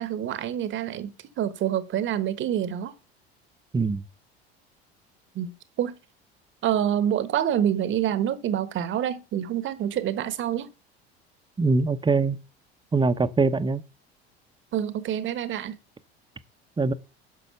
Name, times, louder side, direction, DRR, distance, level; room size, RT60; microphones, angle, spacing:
voice 1, 0.0-2.9 5.3-6.0 6.6-10.7 14.7-15.8, right 10 dB, 40° right, 1.1 m, -27 dB
voice 2, 11.6-12.4 12.9-13.8 16.8-16.9, right 3 dB, 15° right, 0.8 m, -22 dB
10.5 x 6.1 x 5.6 m
figure-of-eight pair, 70°, 31 cm